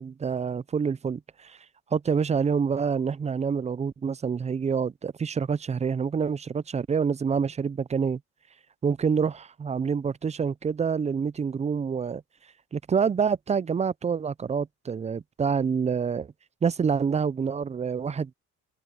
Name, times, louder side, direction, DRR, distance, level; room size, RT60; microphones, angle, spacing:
voice 1, 0.0-1.6 1.9-8.2 8.8-12.2 12.7-16.3 16.6-18.3, right 6 dB, 25° right, 0.4 m, -27 dB
cardioid pair, 90°, 30 cm